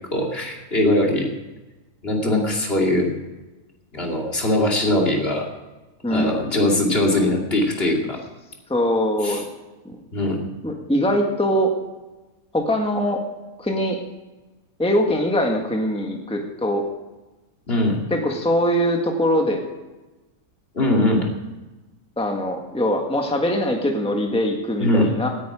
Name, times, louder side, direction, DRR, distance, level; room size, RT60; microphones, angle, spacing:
voice 1, 0.1-1.3 2.0-3.1 3.9-5.5 6.1-8.2 9.2-9.4 10.1-10.4 17.7-18.0 20.7-21.3 24.8-25.1, left 1 dB, 40° left, 0 dB, 2.9 m, -21 dB
voice 2, 2.2-2.6 6.0-6.4 8.7-9.4 9.8-10.0 10.6-11.7 12.5-13.2 13.6-14.0 14.8-16.8 18.1-19.6 22.2-25.3, equal, 5° left, 2 dB, 1.6 m, -22 dB
18.0 x 9.5 x 4.9 m, 1.1 s
omnidirectional pair, 1.6 m